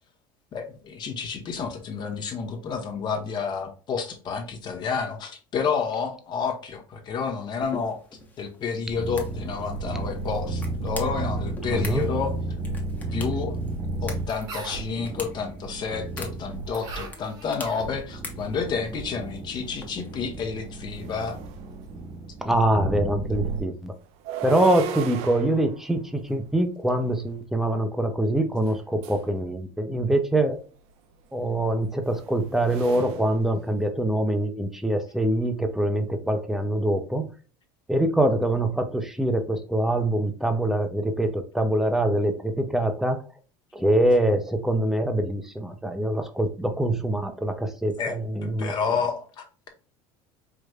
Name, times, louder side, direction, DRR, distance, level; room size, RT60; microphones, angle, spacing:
voice 1, 0.5-8.0 8.4-12.3 13.1-13.6 14.0-21.4 48.0-49.7, left 5 dB, 40° left, 4 dB, 1.1 m, -30 dB
sound 1, 7.6-20.5, left 2 dB, 15° left, 1.0 m, -45 dB
sound 2, 8.9-23.6, right 2 dB, 85° right, 1.6 m, -33 dB
voice 2, 11.7-12.0 22.4-23.9 24.4-30.6 31.3-37.2 37.9-43.2 43.7-48.7, right 1 dB, 5° right, 6 dB, 0.6 m, -24 dB
sound 3, 19.7-19.8 20.2-22.2 24.0-27.3 28.6-29.3 30.7-34.2, right 8 dB, 65° right, 0.6 m, -39 dB
4.9 x 3.2 x 2.4 m, 0.37 s
cardioid pair, 130°, 11 cm